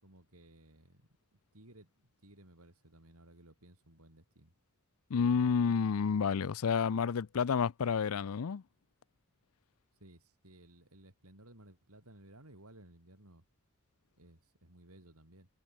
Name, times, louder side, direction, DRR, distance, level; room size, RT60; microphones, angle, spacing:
voice 1, 0.0-1.2 1.5-4.5 10.0-13.4 14.2-15.5, right 1 dB, 85° right, 5.5 m, -58 dB
voice 2, 5.1-8.6, left 6 dB, 80° left, 0.5 m, -30 dB
head